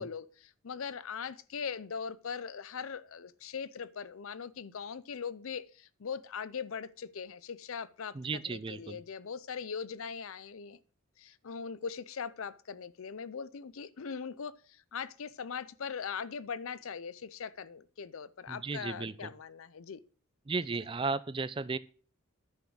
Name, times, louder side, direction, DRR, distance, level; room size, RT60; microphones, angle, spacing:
voice 1, 0.0-10.8 11.2-20.0, left 6 dB, 75° left, 0.6 m, -40 dB
voice 2, 8.1-9.0 18.5-19.3 20.5-21.8, right 4 dB, 25° right, 0.4 m, -35 dB
10.0 x 6.3 x 6.3 m
head